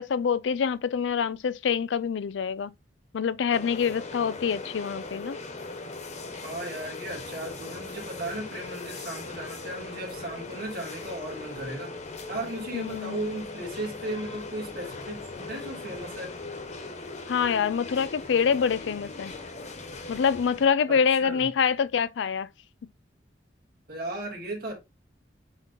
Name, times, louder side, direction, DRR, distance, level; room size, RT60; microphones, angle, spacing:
voice 1, 0.0-2.7 3.1-5.4 12.7-13.3 17.3-19.3 20.1-22.5, left 6 dB, 90° left, 0.4 m, -26 dB
sound 1, 3.5-20.7, left 3 dB, 40° left, 1.1 m, -39 dB
voice 2, 6.4-11.9 12.3-16.3 20.9-21.5 23.9-24.7, right 1 dB, 55° right, 2.9 m, -36 dB
7.9 x 2.9 x 4.2 m
head